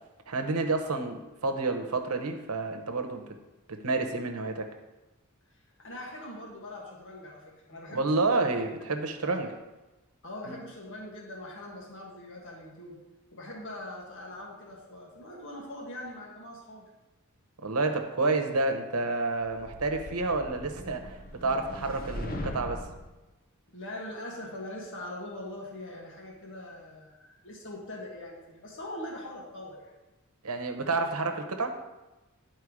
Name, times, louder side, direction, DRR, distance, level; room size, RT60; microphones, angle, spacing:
voice 1, 0.3-3.4 3.7-4.7 7.9-9.5 10.5-10.6 17.6-22.9 30.4-31.8, right 3 dB, 85° right, 6 dB, 1.0 m, -29 dB
voice 2, 5.8-8.7 9.2-9.6 10.2-13.0 13.3-16.8 23.7-27.2 27.4-29.9, left 1 dB, 60° left, -2 dB, 1.6 m, -42 dB
sound 1, 19.6-23.1, left 1 dB, 40° left, 0.7 m, -40 dB
10.0 x 4.5 x 4.7 m, 1.1 s
head